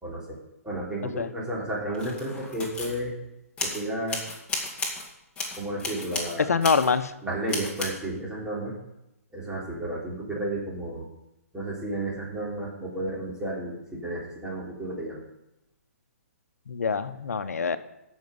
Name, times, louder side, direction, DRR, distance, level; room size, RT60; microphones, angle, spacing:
voice 1, 0.0-0.4 0.6-3.1 3.6-4.2 5.6-6.6 7.2-8.7 9.3-11.1 11.5-15.2, right 1 dB, 10° right, -5 dB, 3.5 m, -32 dB
sound 1, 1.9-3.0 3.6-3.8 4.1-5.1 5.3-6.4 6.6-6.9 7.5-7.9, left 3 dB, 10° left, 2.2 m, -33 dB
voice 2, 6.4-7.1 16.7-17.8, left 5 dB, 75° left, 11 dB, 0.9 m, -25 dB
15.5 x 6.4 x 5.4 m, 0.89 s
hypercardioid pair, 140°, 8 cm